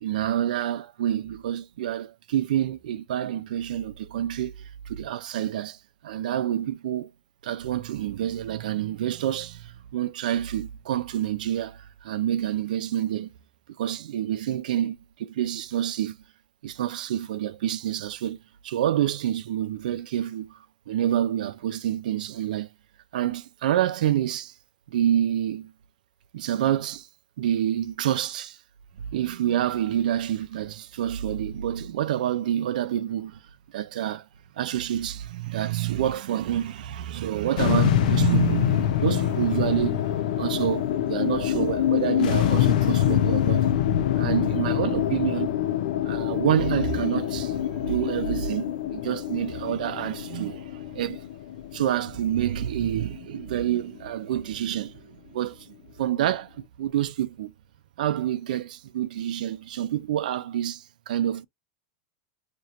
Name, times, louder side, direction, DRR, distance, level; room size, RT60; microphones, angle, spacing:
voice 1, 0.0-5.8 6.0-7.1 7.4-13.3 13.8-16.2 16.6-18.4 18.6-20.6 20.9-22.7 23.1-24.5 24.9-25.7 26.3-27.1 27.4-28.6 29.1-33.4 33.7-34.3 34.6-40.0 40.4-43.7 44.1-45.5 46.0-51.2 51.7-57.5 58.0-61.4, right 11 dB, 90° right, 0.5 m, -28 dB
sound 1, 37.6-54.0, left 11 dB, 75° left, 0.5 m, -25 dB
4.4 x 3.0 x 2.4 m
supercardioid pair, 170°, 4 cm